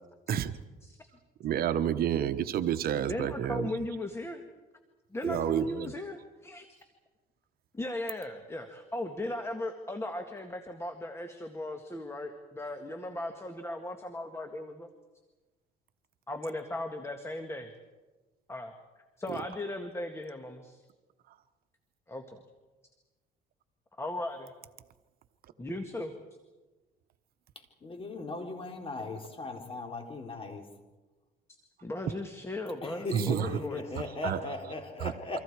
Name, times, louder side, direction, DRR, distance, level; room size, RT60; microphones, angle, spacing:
voice 1, 1.4-3.8 5.2-5.9 19.3-19.4 33.1-33.6 34.2-34.5 35.0-35.1, right 9 dB, 65° right, 10 dB, 1.1 m, -30 dB
voice 2, 3.1-4.4 5.1-6.7 7.8-14.9 16.3-17.7 18.5-18.7 19.2-20.8 22.1-22.4 24.0-24.5 25.6-26.1 31.8-33.9, left 1 dB, 15° left, 6 dB, 1.9 m, -37 dB
voice 3, 27.8-30.7 32.8-35.4, left 3 dB, 35° left, 3 dB, 3.9 m, -38 dB
28.5 x 25.0 x 4.8 m, 1.2 s
cardioid pair, 110°, 17 cm